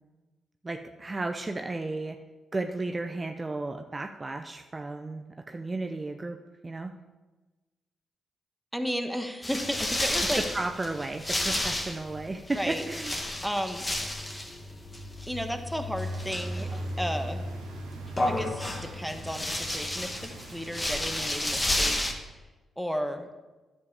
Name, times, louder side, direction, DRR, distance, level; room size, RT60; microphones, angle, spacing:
voice 1, 0.6-2.2 2.5-6.4 6.6-6.9 10.4-13.2, right 2 dB, 30° right, 5 dB, 0.7 m, -33 dB
voice 2, 8.7-10.4 12.5-12.8 13.4-13.9 15.3-17.4 18.3-22.0 22.8-23.3, equal, ahead, 6 dB, 1.3 m, -33 dB
sound 1, 9.4-22.1, left 1 dB, 25° left, 1.7 m, -32 dB
sound 2, 16.1-21.7, right 5 dB, 90° right, 1.1 m, -49 dB
11.0 x 7.5 x 4.7 m, 1.2 s
hypercardioid pair, 45°, 0 cm